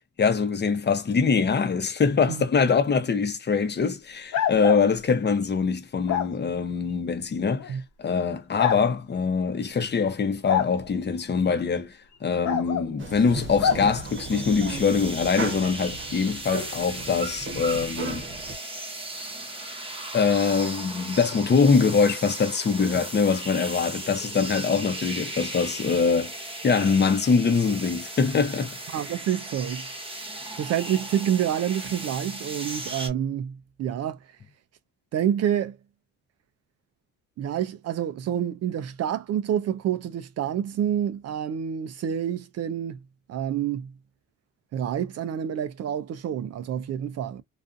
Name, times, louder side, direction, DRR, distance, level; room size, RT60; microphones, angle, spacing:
voice 1, 0.2-18.3 20.1-26.3 26.6-28.8, left 5 dB, 35° left, 0.8 m, -23 dB
sound 1, 4.3-4.8 6.1-6.3 7.6-7.7 8.6-8.8 10.5-10.7 12.4-12.9 13.6-13.8, left 8 dB, 70° left, 1.0 m, -25 dB
sound 2, 13.0-18.5, right 3 dB, 40° right, 0.9 m, -35 dB
sound 3, 13.9-33.1, right 1 dB, 20° right, 0.9 m, -37 dB
voice 2, 28.9-29.9 30.5-34.2 35.1-35.8 37.4-43.0 43.3-43.9 44.7-47.4, right 9 dB, 55° right, 0.4 m, -28 dB
2.4 x 2.4 x 2.5 m
cardioid pair, 90°, 30 cm